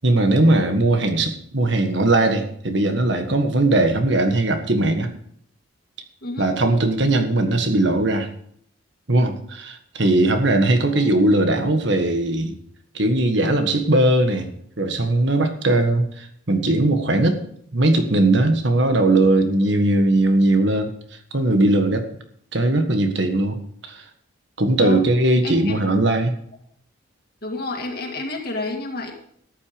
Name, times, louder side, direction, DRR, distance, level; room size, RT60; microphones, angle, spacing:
voice 1, 0.0-5.1 6.4-8.3 9.1-12.5 12.9-14.5 14.8-17.4 17.7-21.0 21.3-22.1 22.5-23.6 23.9-24.0 24.6-26.3, right 2 dB, 60° right, 7 dB, 1.6 m, -19 dB
voice 2, 6.2-6.5 10.8-11.0 24.8-25.1 25.4-25.8 27.4-29.1, left 2 dB, 50° left, 1 dB, 2.2 m, -30 dB
13.5 x 9.1 x 5.2 m, 0.66 s
head